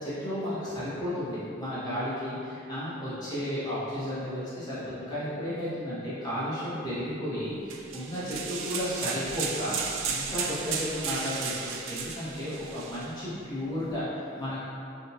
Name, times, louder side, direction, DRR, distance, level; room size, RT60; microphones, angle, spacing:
voice 1, 0.0-9.8 10.1-14.6, equal, 20° left, -12 dB, 1.2 m, -33 dB
sound 1, 7.7-13.1, right 6 dB, 80° right, 0.3 m, -34 dB
3.6 x 2.6 x 2.8 m, 2.6 s
head